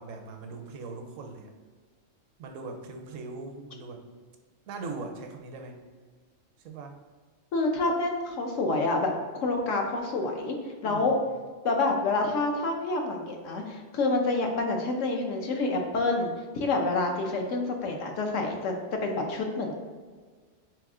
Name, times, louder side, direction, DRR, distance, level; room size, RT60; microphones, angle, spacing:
voice 1, 0.0-1.5 2.4-4.0 4.7-5.8 6.6-7.0 10.8-11.2, right 3 dB, 75° right, 4 dB, 1.0 m, -40 dB
voice 2, 7.5-10.6 10.8-11.2 11.6-19.8, left 2 dB, 70° left, 2 dB, 1.0 m, -28 dB
3.4 x 3.4 x 3.6 m, 1.5 s
omnidirectional pair, 1.4 m